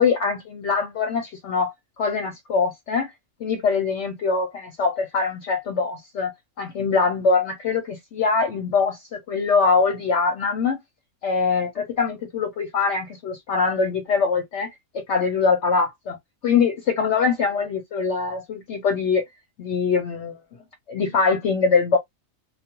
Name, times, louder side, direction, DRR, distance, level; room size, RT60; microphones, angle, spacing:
voice 1, 0.0-1.7 2.0-3.1 3.4-6.3 6.6-10.8 11.2-14.7 14.9-16.2 16.4-19.2 19.6-20.4 20.9-22.0, left 5 dB, 65° left, 0.8 m, -23 dB
2.3 x 2.3 x 2.9 m
omnidirectional pair, 1.5 m